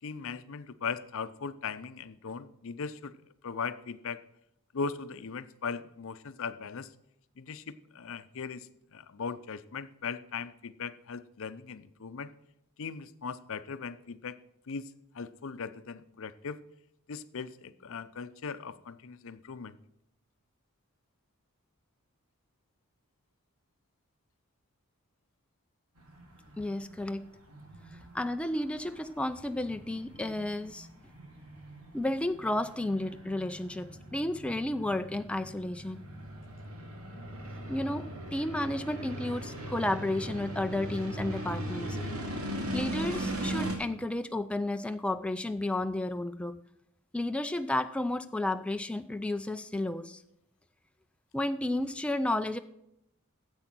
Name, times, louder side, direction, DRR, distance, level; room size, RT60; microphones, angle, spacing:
voice 1, 0.0-3.1 3.4-4.2 4.7-6.9 7.4-12.3 12.8-14.4 14.7-16.6 17.1-19.7, left 5 dB, 65° left, 13 dB, 0.6 m, -39 dB
sound 1, 26.0-43.8, right 1 dB, 90° right, 2.4 m, -39 dB
voice 2, 26.6-27.3 28.1-30.9 31.9-36.1 37.7-42.0 42.7-46.6 47.1-50.2 51.3-52.6, left 1 dB, 5° left, 8 dB, 0.4 m, -32 dB
12.5 x 7.9 x 6.0 m, 0.80 s
head